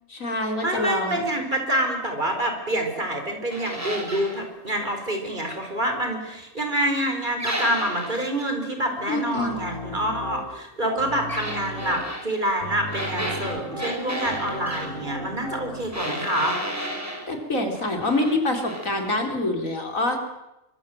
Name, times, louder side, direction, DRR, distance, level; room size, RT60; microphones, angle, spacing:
voice 1, 0.1-1.3 9.1-9.7 17.3-20.2, left 2 dB, 80° left, 4 dB, 4.2 m, -26 dB
voice 2, 0.6-16.6, right 1 dB, 35° right, 4 dB, 4.7 m, -27 dB
sound 1, 3.5-4.4 7.4-8.2 11.3-12.2 12.9-14.9 15.9-17.3 17.7-18.4 18.7-18.9, equal, 10° right, 6.4 m, -32 dB
Piano, 9.4-10.4 10.8-12.0 12.6-15.8, equal, 40° left, 8.1 m, -35 dB
24.5 x 23.0 x 7.7 m, 0.94 s
omnidirectional pair, 1.4 m